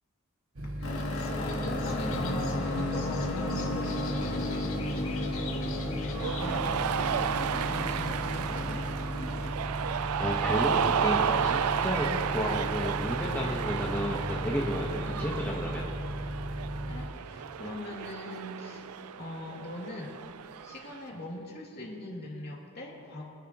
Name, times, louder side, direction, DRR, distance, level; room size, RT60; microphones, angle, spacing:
sound 1, 0.6-17.1, equal, 70° right, 1.2 m, -36 dB
sound 2, 0.8-9.5, left 2 dB, 75° left, 1.9 m, -34 dB
voice 1, 0.8-8.9 13.9-14.2 15.0-15.5 16.9-18.9 19.2-20.1 20.6-23.3, left 1 dB, 45° left, -4 dB, 2.6 m, -41 dB
Cheering, 6.1-21.0, right 7 dB, 85° right, 0.4 m, -32 dB
voice 2, 10.2-15.8, equal, 10° left, -5 dB, 1.2 m, -32 dB
25.5 x 10.5 x 3.0 m, 2.7 s
head